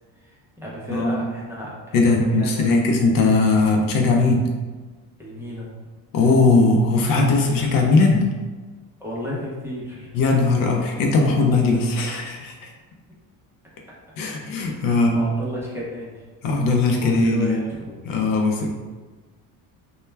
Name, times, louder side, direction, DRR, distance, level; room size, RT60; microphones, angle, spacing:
voice 1, 0.2-2.7 5.2-5.7 9.0-10.2 14.7-16.2 17.0-18.0, equal, 5° right, -6 dB, 0.5 m, -33 dB
voice 2, 0.9-1.3 1.9-4.5 6.1-8.3 10.1-12.7 14.2-15.3 16.4-17.6 18.0-18.7, left 3 dB, 60° left, 1 dB, 0.6 m, -19 dB
2.2 x 2.2 x 3.2 m, 1.4 s
cardioid pair, 125°, 38 cm